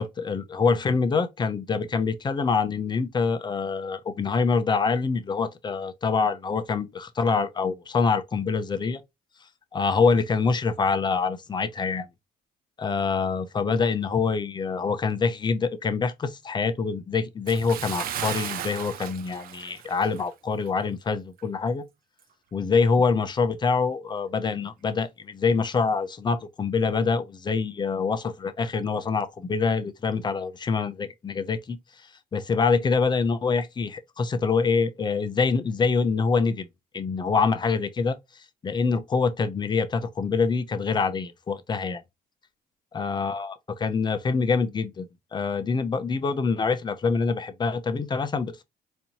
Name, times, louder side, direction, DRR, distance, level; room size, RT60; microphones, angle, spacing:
voice 1, 0.0-9.0 9.7-12.1 12.8-21.8 22.5-31.8 32.3-36.7 36.9-42.0 42.9-45.1 45.3-48.6, left 5 dB, 25° left, 0.6 m, -25 dB
Bathtub (filling or washing) / Splash splatter, 17.5-20.3 20.6-20.8 21.4-21.5, right 10 dB, 60° right, 0.6 m, -35 dB
4.2 x 2.7 x 2.9 m
cardioid pair, 110°, 17 cm